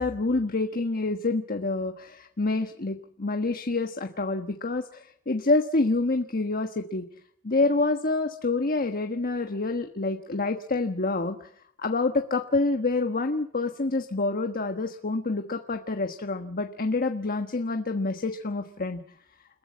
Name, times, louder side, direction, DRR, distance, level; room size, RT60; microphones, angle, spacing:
voice 1, 0.0-7.0 7.4-11.5 11.8-19.0, left 3 dB, 40° left, 5 dB, 1.3 m, -27 dB
29.5 x 15.0 x 8.5 m, 0.68 s
head